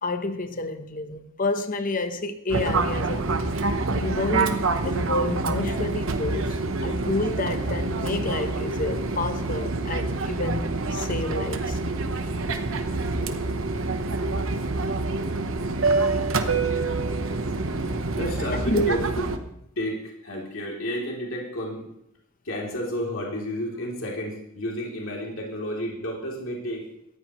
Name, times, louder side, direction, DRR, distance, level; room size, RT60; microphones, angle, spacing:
voice 1, 0.0-3.3 4.0-6.6 6.8-11.8 18.7-18.9, left 2 dB, 40° left, 1.0 m, -29 dB
Fixed-wing aircraft airplane, 2.5-19.4, right 3 dB, 65° right, 1.0 m, -26 dB
voice 2, 12.8-13.6 13.9-14.0 17.5-21.9 22.4-26.9, equal, 70° left, 3.2 m, -32 dB
18.0 x 14.5 x 3.1 m
head